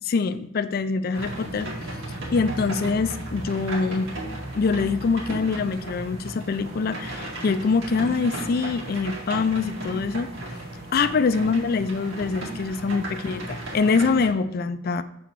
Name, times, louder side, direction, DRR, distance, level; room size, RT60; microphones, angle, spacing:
voice 1, 0.1-1.7 2.3-4.1 4.5-10.3 10.9-15.0, left 4 dB, 50° left, 13 dB, 0.4 m, -24 dB
sound 1, 1.1-14.3, right 1 dB, 75° right, 2.0 m, -35 dB
5.9 x 4.2 x 6.0 m, 0.77 s
head